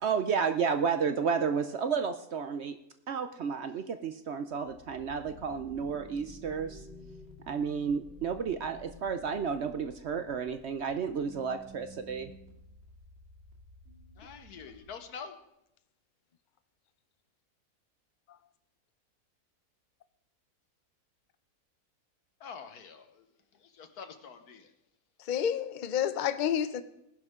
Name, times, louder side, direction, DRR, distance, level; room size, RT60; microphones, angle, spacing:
voice 1, 0.0-2.8 3.1-6.8 7.5-12.3, right 6 dB, 60° right, 0.7 m, -32 dB
sound 1, 4.6-15.2, equal, 40° right, 2.5 m, -52 dB
voice 2, 14.2-15.4 22.4-23.3 23.6-24.7, left 6 dB, 80° left, 1.6 m, -46 dB
voice 3, 25.2-26.8, left 9 dB, 50° left, 0.6 m, -29 dB
19.0 x 11.0 x 3.7 m
omnidirectional pair, 1.6 m